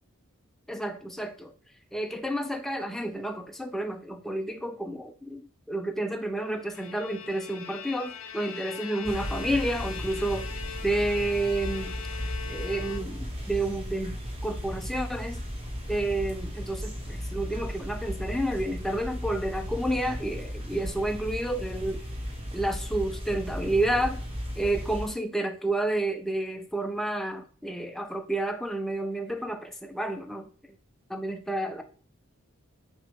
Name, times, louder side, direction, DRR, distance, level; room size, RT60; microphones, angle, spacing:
voice 1, 0.7-1.5 1.9-11.9 12.5-15.4 15.9-22.0 22.5-24.2 24.6-30.5 31.1-31.8, right 1 dB, ahead, 5 dB, 0.3 m, -30 dB
Bowed string instrument, 6.5-13.5, left 8 dB, 80° left, 0.4 m, -41 dB
sound 1, 9.0-25.1, equal, 30° right, 0.9 m, -35 dB
5.9 x 2.3 x 3.5 m, 0.42 s
head